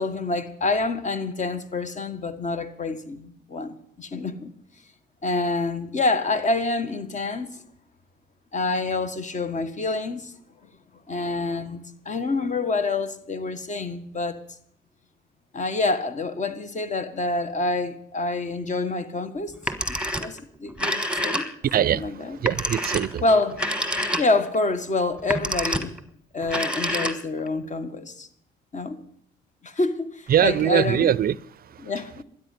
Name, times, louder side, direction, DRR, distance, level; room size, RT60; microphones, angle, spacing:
voice 1, 0.0-4.5 5.2-7.6 8.5-10.3 11.1-11.8 12.1-14.4 15.5-21.5 21.8-22.4 23.2-23.6 24.2-25.9 26.3-28.3 28.7-29.0 29.6-31.2 31.8-32.2, left 3 dB, 40° left, 1.7 m, -27 dB
Telephone, 19.5-20.4 20.7-21.8 22.4-24.5 25.2-26.0 26.4-27.5, equal, 5° right, 1.5 m, -27 dB
voice 2, 21.6-23.2 23.9-24.2 30.3-31.9, right 10 dB, 50° right, 0.5 m, -23 dB
13.0 x 10.0 x 9.6 m
cardioid pair, 90°, 20 cm